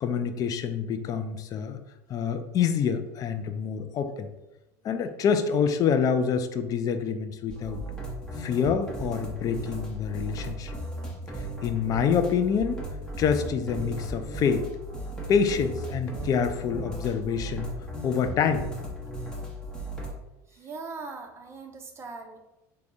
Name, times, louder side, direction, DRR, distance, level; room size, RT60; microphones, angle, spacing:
voice 1, 0.0-1.8 2.1-4.3 4.8-7.8 8.4-10.8 11.6-12.8 13.2-14.7 15.3-17.7 18.0-18.6, left 6 dB, 45° left, 9 dB, 0.4 m, -26 dB
sound 1, 7.5-20.1, right 1 dB, 10° left, 1.0 m, -36 dB
voice 2, 20.5-22.4, right 4 dB, 30° right, 4 dB, 0.5 m, -40 dB
3.4 x 2.3 x 3.9 m, 0.99 s
supercardioid pair, 100°, 9 cm